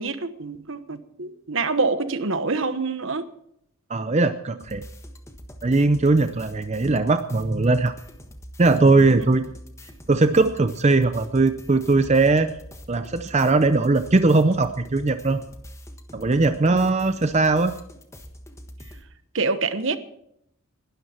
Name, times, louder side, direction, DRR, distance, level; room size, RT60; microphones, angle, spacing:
voice 1, 0.0-3.2 16.7-16.9 19.3-20.0, right 3 dB, 60° right, 1.1 m, -26 dB
voice 2, 3.9-4.8 5.6-7.9 8.6-9.5 10.1-12.5 12.9-15.4 16.1-17.7, right 3 dB, 30° right, 0.6 m, -20 dB
sound 1, 4.6-19.0, equal, 15° left, 1.4 m, -44 dB
20.5 x 12.5 x 4.4 m
head